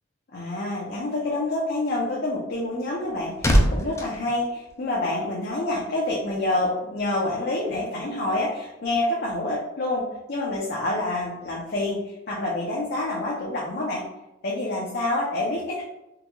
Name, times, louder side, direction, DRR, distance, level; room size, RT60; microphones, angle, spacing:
voice 1, 0.3-14.0 14.4-15.8, left 2 dB, 55° left, -4 dB, 0.6 m, -27 dB
sound 1, 2.7-5.4 5.6-5.9, equal, 15° left, 0.4 m, -25 dB
3.8 x 2.3 x 2.9 m, 0.91 s
head